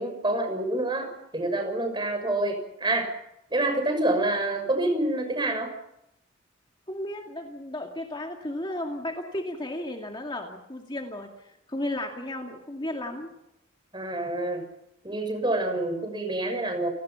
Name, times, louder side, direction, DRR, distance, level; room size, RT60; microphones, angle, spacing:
voice 1, 0.0-3.1 3.5-5.7 13.9-14.6 15.0-16.9, right 2 dB, 20° right, 5 dB, 6.5 m, -27 dB
voice 2, 6.9-11.3 11.7-13.3, left 1 dB, 20° left, 2 dB, 2.3 m, -34 dB
29.5 x 19.0 x 5.9 m, 0.83 s
head